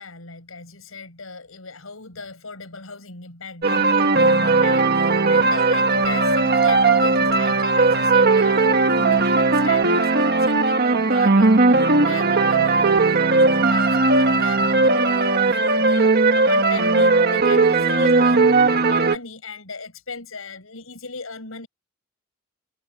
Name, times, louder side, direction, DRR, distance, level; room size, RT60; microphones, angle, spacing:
voice 1, 0.0-21.7, left 4 dB, 85° left, 5.7 m, -37 dB
sound 1, 3.6-19.2, right 3 dB, 50° right, 1.5 m, -18 dB
head